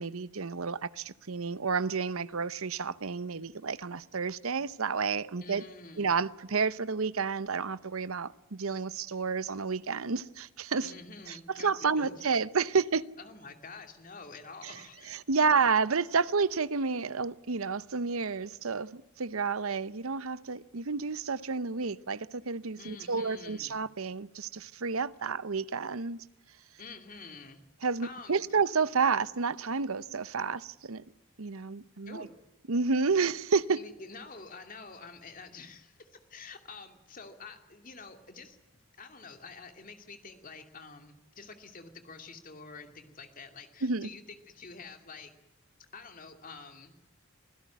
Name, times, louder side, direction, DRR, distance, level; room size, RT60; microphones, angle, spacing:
voice 1, 0.0-5.6 6.0-10.9 11.3-13.0 14.6-14.8 15.1-26.2 27.8-31.0 31.4-32.3 32.7-33.8 43.8-44.1, right 5 dB, 75° right, 0.8 m, -30 dB
voice 2, 5.4-6.1 10.8-11.7 12.0-12.2 13.2-15.2 22.8-23.8 26.8-27.6 28.0-28.4 32.1-32.4 33.7-38.6 39.0-45.3 45.9-46.9, left 4 dB, 40° left, 2.6 m, -48 dB
25.5 x 16.5 x 9.4 m
head